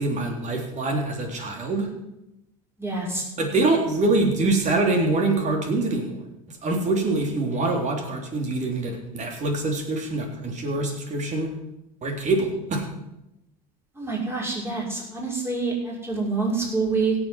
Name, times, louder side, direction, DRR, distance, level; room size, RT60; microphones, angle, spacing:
voice 1, 0.0-1.9 3.4-6.1 6.6-11.5 12.0-12.8, right 2 dB, 40° right, 2 dB, 3.7 m, -24 dB
voice 2, 2.8-3.2 13.9-17.2, right 4 dB, 15° right, -3 dB, 6.0 m, -26 dB
16.5 x 7.7 x 6.2 m, 0.89 s
hypercardioid pair, 80°, 18 cm